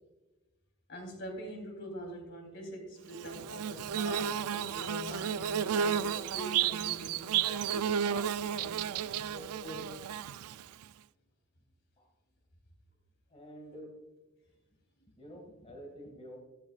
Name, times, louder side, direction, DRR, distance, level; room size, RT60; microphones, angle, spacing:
voice 1, 0.9-9.8, equal, 55° left, 3 dB, 3.4 m, -44 dB
Bird / Buzz, 3.1-10.8, right 8 dB, 80° right, 0.4 m, -32 dB
voice 2, 13.3-14.0 15.1-16.4, equal, 30° left, 0 dB, 2.2 m, -48 dB
14.5 x 12.5 x 2.4 m, 1.1 s
head